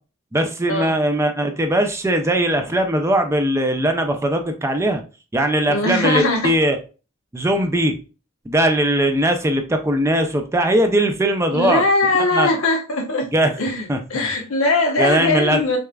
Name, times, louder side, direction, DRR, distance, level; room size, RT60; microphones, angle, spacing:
voice 1, 0.3-5.0 5.3-6.8 7.3-7.9 8.5-11.8 12.3-12.5 13.3-13.5 13.9-14.3 15.0-15.6, right 1 dB, 15° right, 0.4 m, -19 dB
voice 2, 5.7-6.5 11.5-13.3 13.6-13.8 14.1-15.8, left 2 dB, 85° left, 1.0 m, -20 dB
6.2 x 2.4 x 2.3 m
head